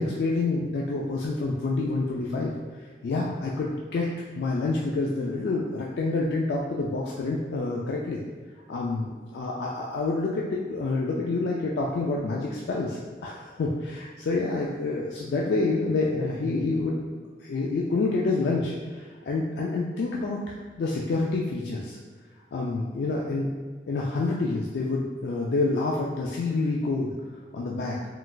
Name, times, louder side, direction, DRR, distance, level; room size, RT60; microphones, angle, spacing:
voice 1, 0.0-2.5 3.0-4.1 4.3-8.2 8.7-17.1 17.4-22.0 22.5-23.5 23.9-27.1 27.5-28.0, left 3 dB, 65° left, -3 dB, 0.3 m, -28 dB
3.8 x 2.3 x 2.3 m, 1.5 s
head